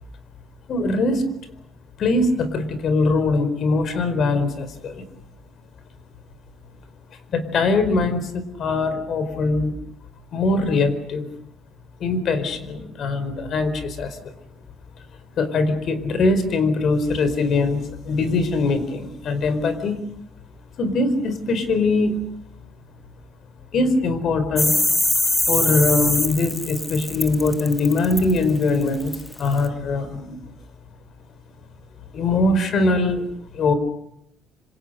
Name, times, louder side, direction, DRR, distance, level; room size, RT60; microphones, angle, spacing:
voice 1, 0.7-1.2 2.0-5.0 7.3-9.7 10.3-11.3 12.0-14.2 15.4-20.0 20.8-22.2 23.7-24.7 25.5-30.4 32.1-33.2 33.5-33.7, left 3 dB, 50° left, 11 dB, 4.5 m, -22 dB
sound 1, 24.6-29.7, left 1 dB, 10° left, 1.6 m, -22 dB
26.5 x 26.0 x 6.7 m, 0.76 s
cardioid pair, 135°, 0 cm